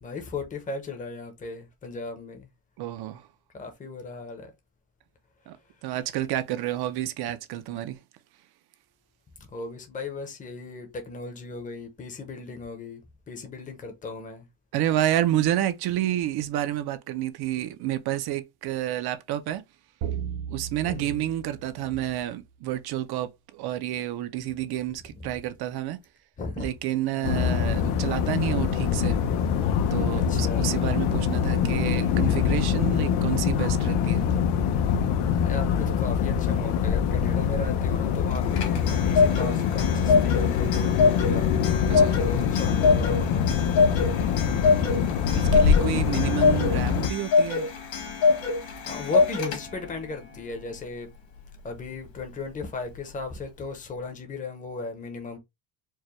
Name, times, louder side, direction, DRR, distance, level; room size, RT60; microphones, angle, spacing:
voice 1, 0.0-2.5 3.5-4.5 9.4-13.0 13.3-14.5 20.8-21.3 26.4-26.7 27.1-27.3 30.1-30.7 35.4-41.6 41.9-43.5 48.9-51.1 51.6-55.4, left 3 dB, 15° left, 0.7 m, -36 dB
voice 2, 2.8-3.3 5.5-5.6 5.8-8.0 14.7-19.6 20.5-26.0 26.6-29.2 29.9-34.3 34.9-35.0 41.9-42.2 45.3-47.7, right 13 dB, 50° right, 0.5 m, -29 dB
sound 1, 20.0-22.5, right 8 dB, 70° right, 0.9 m, -36 dB
sound 2, 27.2-47.1, left 7 dB, 80° left, 0.8 m, -24 dB
Clock, 38.3-49.9, left 4 dB, 65° left, 1.7 m, -25 dB
4.6 x 2.2 x 3.0 m
cardioid pair, 180°, 49 cm